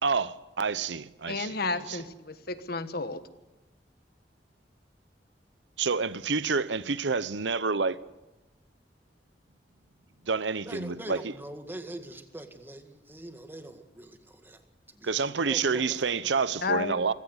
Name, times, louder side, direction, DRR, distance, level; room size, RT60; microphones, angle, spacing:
voice 1, 0.0-1.5 1.9-2.0 5.8-8.0 10.3-11.2 15.0-17.1, right 5 dB, 90° right, 0.8 m, -28 dB
voice 2, 1.3-3.2 16.6-17.1, left 4 dB, 60° left, 1.4 m, -32 dB
voice 3, 10.7-14.6 14.9-16.3, right 1 dB, 10° right, 1.9 m, -43 dB
24.5 x 17.0 x 8.1 m
head